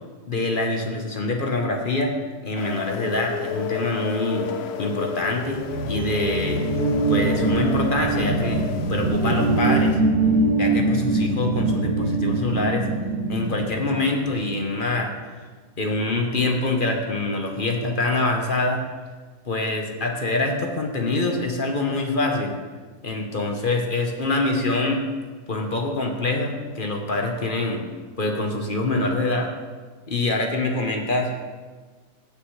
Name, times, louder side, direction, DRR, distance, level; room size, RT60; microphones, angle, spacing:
voice 1, 0.3-2.1 2.4-4.5 4.8-6.6 7.1-8.6 8.9-10.0 10.6-12.9 13.3-15.1 15.8-18.8 19.4-22.5 23.0-25.0 25.5-27.8 28.2-29.5 30.1-31.3, left 2 dB, 35° left, 2 dB, 1.0 m, -25 dB
sound 1, 2.6-10.0, left 6 dB, 80° left, 0.5 m, -31 dB
sound 2, 5.4-14.6, right 3 dB, 35° right, 0.9 m, -23 dB
16.5 x 6.7 x 3.2 m, 1.4 s
omnidirectional pair, 1.7 m